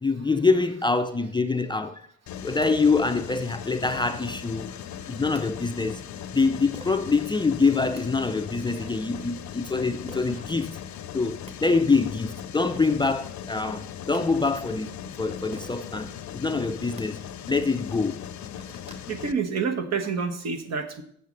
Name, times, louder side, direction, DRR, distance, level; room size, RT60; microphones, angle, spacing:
voice 1, 0.0-2.0 2.4-4.7 5.1-6.0 6.3-10.8 11.1-14.9 15.2-17.2 17.5-18.2, left 4 dB, 15° left, 0.4 m, -25 dB
Mechanisms, 2.3-19.3, left 9 dB, 70° left, 0.7 m, -39 dB
sound 1, 2.6-2.7 3.8-4.2 5.2-5.4 6.7-7.0 7.7-8.0 10.1-10.3 11.0-11.1 11.3-11.5 12.4-12.5 12.8-13.0 13.8-14.2 15.5-15.8 16.8-17.0 17.7-17.8 18.2-19.1, right 2 dB, 20° right, 1.4 m, -45 dB
voice 2, 19.1-21.0, right 5 dB, 60° right, 1.2 m, -28 dB
7.9 x 6.3 x 5.3 m
cardioid pair, 90°, 30 cm